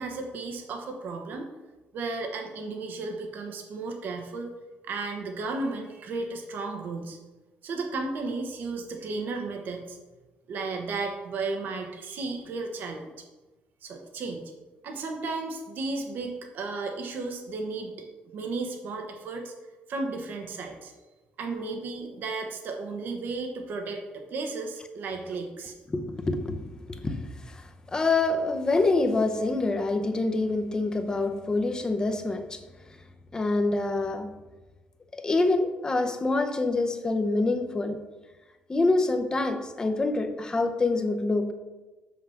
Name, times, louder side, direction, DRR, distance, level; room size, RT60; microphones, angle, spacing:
voice 1, 0.0-1.5 1.9-4.5 4.8-7.2 7.6-10.0 10.5-13.1 13.8-14.5 14.8-17.9 18.3-19.5 19.9-20.9 21.4-25.7, right 3 dB, 65° right, 3 dB, 1.2 m, -34 dB
voice 2, 25.9-27.6 27.9-32.6 33.3-34.3 35.1-38.0 38.7-41.5, left 2 dB, 20° left, 6 dB, 0.8 m, -26 dB
6.3 x 5.8 x 5.7 m, 1.2 s
cardioid pair, 130°, 4 cm